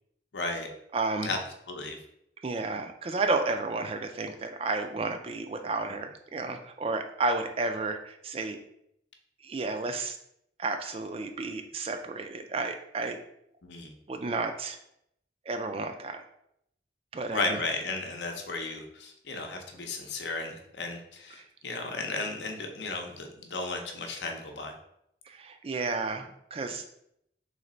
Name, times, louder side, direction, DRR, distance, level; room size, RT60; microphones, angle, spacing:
voice 1, 0.3-0.7 1.2-1.4 1.7-2.0 13.6-13.9 17.3-24.7, left 3 dB, 80° left, 3 dB, 0.7 m, -34 dB
voice 2, 0.9-1.3 2.4-8.6 9.4-10.2 10.6-13.2 14.1-14.8 15.5-16.2 17.1-17.6 21.4-21.5 25.3-26.9, right 3 dB, 30° right, 6 dB, 0.3 m, -32 dB
3.2 x 3.1 x 3.8 m, 0.75 s
head